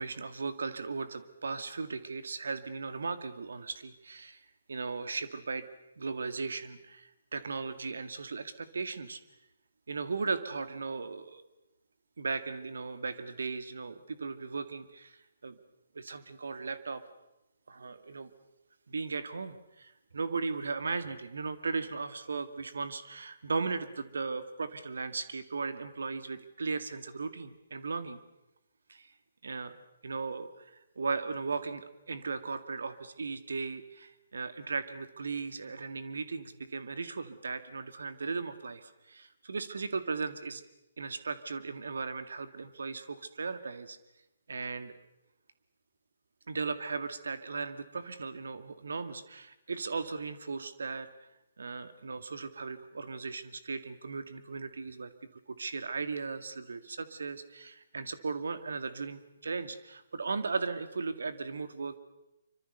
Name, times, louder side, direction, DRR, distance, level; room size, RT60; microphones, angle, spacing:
voice 1, 0.0-4.4 4.7-5.7 6.0-9.2 9.9-11.4 12.2-15.2 15.4-15.6 15.9-17.0 17.7-18.3 18.9-28.2 28.9-29.1 29.4-29.7 30.0-30.6 31.0-40.6 41.0-44.0 44.5-44.9 46.5-51.1 51.6-55.1 55.5-62.0, right 4 dB, 70° right, 12 dB, 2.0 m, -37 dB
26.0 x 24.5 x 6.7 m, 0.92 s
figure-of-eight pair, 135°, 0 cm